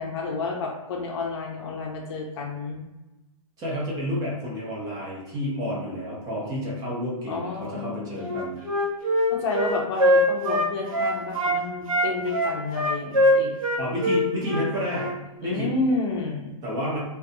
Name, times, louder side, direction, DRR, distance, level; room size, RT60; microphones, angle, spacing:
voice 1, 0.0-2.8 7.3-8.5 9.3-13.5 15.4-16.6, left 3 dB, 50° left, 0 dB, 0.6 m, -30 dB
voice 2, 3.6-8.6 13.8-15.1 15.4-15.7 16.6-17.0, equal, 20° right, -5 dB, 0.7 m, -30 dB
Wind instrument woodwind instrument, 8.2-11.6 11.9-15.1, equal, 70° right, 0.7 m, -22 dB
2.4 x 2.2 x 2.6 m, 1.0 s
hypercardioid pair, 150°, 18 cm